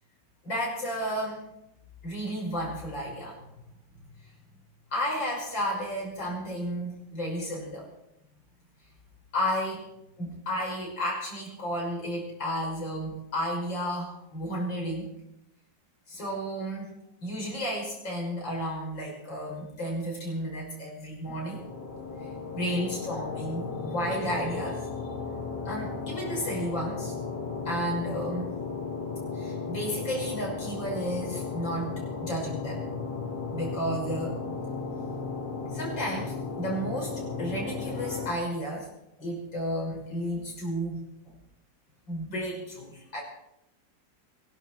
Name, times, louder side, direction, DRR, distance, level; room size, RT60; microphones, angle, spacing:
voice 1, 0.4-1.5 2.0-3.4 4.9-7.9 9.3-9.8 10.2-15.1 16.1-16.9 17.2-21.6 22.1-24.9 25.6-27.1 27.6-28.5 29.3-32.8 33.5-34.5 35.7-38.9 39.2-41.0 42.1-43.2, equal, 85° left, -2 dB, 6.7 m, -32 dB
sound 1, 21.5-38.3, left 4 dB, 30° left, 1.6 m, -35 dB
23.5 x 12.0 x 4.6 m, 0.83 s
omnidirectional pair, 2.0 m